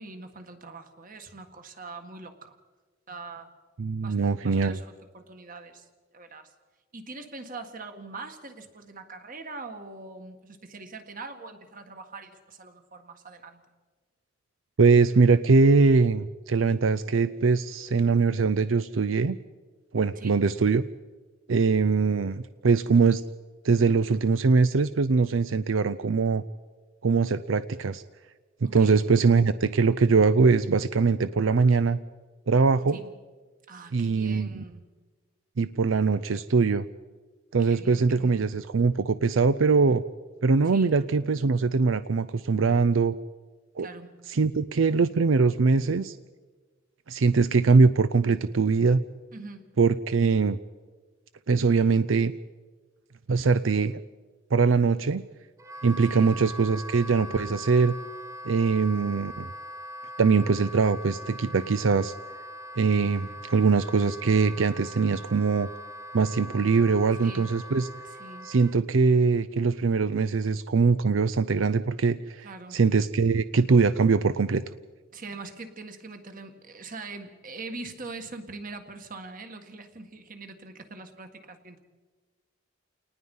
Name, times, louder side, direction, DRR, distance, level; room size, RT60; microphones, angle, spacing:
voice 1, 0.0-2.6 3.1-3.5 4.0-5.9 6.1-6.5 6.9-13.6 20.2-20.4 28.6-29.0 32.9-33.1 33.7-34.9 37.6-38.5 40.7-40.9 43.8-44.2 49.3-49.8 56.1-56.4 67.2-67.5 68.0-68.5 72.4-72.8 75.1-81.8, right 3 dB, 45° right, 7 dB, 1.9 m, -43 dB
voice 2, 3.8-4.8 14.8-19.4 19.9-20.8 21.5-23.2 23.6-26.4 27.0-28.0 28.6-32.0 32.5-33.0 33.9-34.6 35.6-36.8 37.5-40.0 40.4-43.1 43.8-43.9 44.3-46.2 47.1-49.0 49.8-50.6 51.5-52.3 53.3-54.0 54.5-55.2 55.8-57.9 58.4-59.5 60.2-62.1 62.8-65.7 66.1-67.9 68.4-74.6, right 4 dB, 80° right, 14 dB, 0.6 m, -22 dB
Wind instrument woodwind instrument, 55.6-68.8, equal, 15° right, 1.0 m, -41 dB
28.5 x 19.5 x 5.5 m, 1.3 s
head